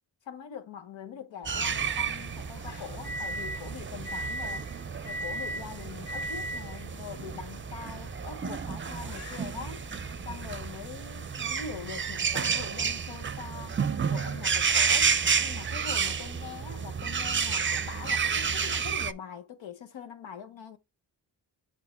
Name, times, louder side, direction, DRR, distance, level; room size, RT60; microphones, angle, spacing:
voice 1, 0.2-4.8 5.0-9.9 10.2-13.8 14.1-20.8, left 7 dB, 85° left, 1.0 m, -43 dB
sound 1, 1.4-10.9, equal, 65° left, 1.5 m, -40 dB
sound 2, 1.5-19.1, right 6 dB, 25° right, 0.5 m, -31 dB
6.1 x 4.2 x 4.4 m
cardioid pair, 50°, 44 cm